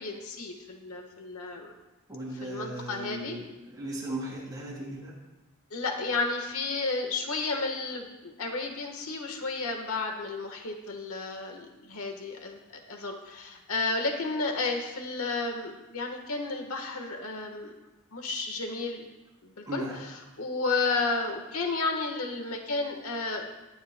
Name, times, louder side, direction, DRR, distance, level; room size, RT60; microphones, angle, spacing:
voice 1, 0.0-1.7 2.4-3.4 5.7-17.7 18.1-19.1 19.4-23.5, left 3 dB, 75° left, 4 dB, 1.3 m, -32 dB
voice 2, 2.1-3.4 3.7-5.1 19.7-20.0, right 1 dB, 20° right, -5 dB, 4.3 m, -37 dB
20.0 x 10.5 x 2.2 m, 1.1 s
head